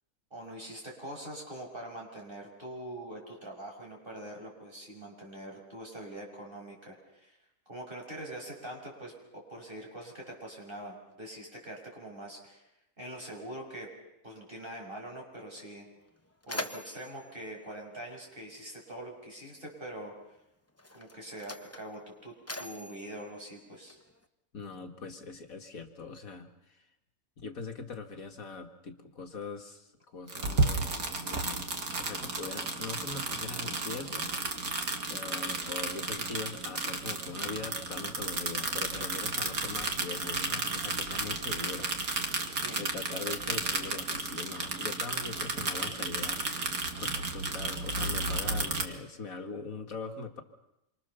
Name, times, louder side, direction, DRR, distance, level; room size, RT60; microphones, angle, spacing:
voice 1, 0.3-7.4 7.7-12.6 13.0-13.9 14.2-15.8 16.5-20.1 20.9-24.0 42.6-42.8, right 1 dB, 35° right, 0 dB, 6.5 m, -43 dB
Mechanisms, 15.5-15.6 16.0-18.7 19.7-19.9 20.7-24.3, left 1 dB, 10° left, 1.1 m, -43 dB
voice 2, 24.5-26.8 27.4-34.3 35.1-42.4 42.8-46.4 47.0-50.4, left 4 dB, 65° left, 4 dB, 2.1 m, -42 dB
sound 1, 30.3-48.8, right 3 dB, 75° right, 2.6 m, -33 dB
27.0 x 25.0 x 6.9 m, 0.87 s
omnidirectional pair, 1.6 m